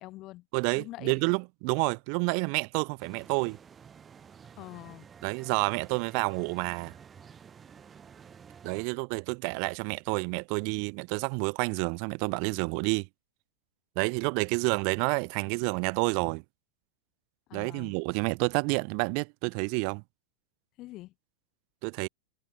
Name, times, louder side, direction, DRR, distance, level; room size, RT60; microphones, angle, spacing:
voice 1, 0.0-0.5 0.8-1.2 4.6-5.1 17.5-18.0 20.8-21.1, left 18 dB, 35° left, 6.0 m, -44 dB
voice 2, 0.5-3.6 5.2-7.0 8.6-13.1 14.0-16.4 17.5-20.0 21.8-22.1, right 40 dB or more, 45° right, 0.6 m, -29 dB
sound 1, 3.0-8.9, right 7 dB, 20° right, 6.6 m, -51 dB
figure-of-eight pair, 90°, 0 cm